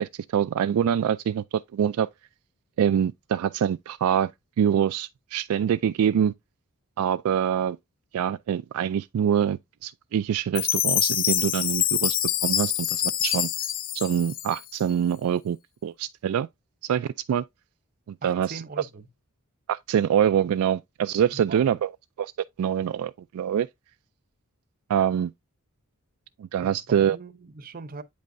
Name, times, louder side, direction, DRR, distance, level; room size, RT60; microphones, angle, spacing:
voice 1, 0.0-2.1 2.8-4.3 4.6-6.3 7.0-7.8 8.1-12.2 12.4-13.5 13.9-15.6 15.8-16.5 16.9-17.4 18.1-18.9 19.7-21.9 22.2-22.3 22.6-23.7 24.9-25.3 26.4-27.2, right 9 dB, 70° right, 0.3 m, -25 dB
Chime, 10.6-14.9, left 11 dB, 40° left, 0.5 m, -26 dB
voice 2, 18.2-19.1 21.3-21.7 26.6-28.0, right 4 dB, 40° right, 0.7 m, -41 dB
8.6 x 5.3 x 2.5 m
head